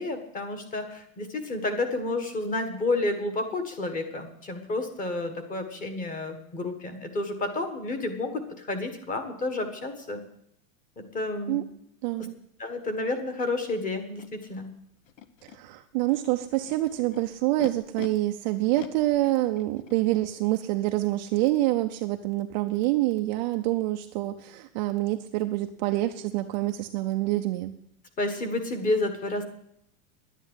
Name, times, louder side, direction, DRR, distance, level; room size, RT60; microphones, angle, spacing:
voice 1, 0.0-10.2 11.0-11.6 12.2-12.3 12.6-14.7 28.2-29.4, left 2 dB, 20° left, 7 dB, 1.6 m, -30 dB
voice 2, 12.0-12.3 15.4-27.7, right 16 dB, 35° right, 6 dB, 0.5 m, -26 dB
Animal, 14.2-14.3 15.1-15.6 16.4-18.1 18.7-20.0, left 9 dB, 70° left, 1.2 m, -42 dB
10.5 x 10.0 x 8.1 m, 0.73 s
supercardioid pair, 160°, 41 cm